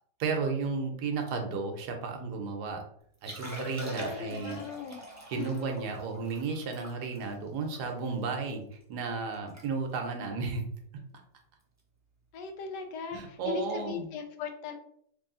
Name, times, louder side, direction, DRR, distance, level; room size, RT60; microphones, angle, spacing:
voice 1, 0.2-2.8 3.2-4.6 5.3-8.6 8.9-10.6 13.1-14.1, right 4 dB, 75° right, 4 dB, 1.2 m, -33 dB
Liquid, 3.1-8.5 9.0-9.1 9.3-9.7 9.9-10.2 10.8-11.0 12.5-12.6, right 1 dB, 20° right, 0.4 m, -42 dB
voice 2, 4.0-5.0 5.4-5.8 12.3-14.7, left 6 dB, 80° left, 5 dB, 1.2 m, -38 dB
3.3 x 2.7 x 3.7 m, 0.67 s
omnidirectional pair, 1.8 m